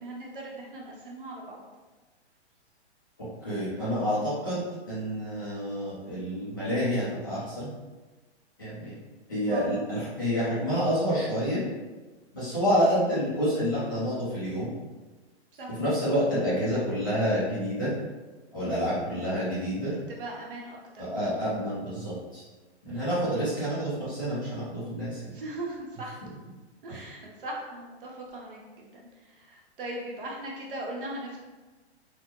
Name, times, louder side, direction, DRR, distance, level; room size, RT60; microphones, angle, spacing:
voice 1, 0.0-1.6 9.5-9.7 15.5-15.7 19.1-19.5 20.1-21.1 22.9-23.4 25.3-26.2 26.8-31.4, right 1 dB, 50° right, -2 dB, 0.7 m, -39 dB
voice 2, 3.2-7.7 8.6-8.9 9.3-11.6 12.3-14.7 15.8-17.9 18.5-19.9 21.0-22.4 22.9-25.3 26.9-27.0, equal, 20° left, -12 dB, 0.5 m, -28 dB
3.3 x 2.1 x 2.9 m, 1.2 s
hypercardioid pair, 180°, 34 cm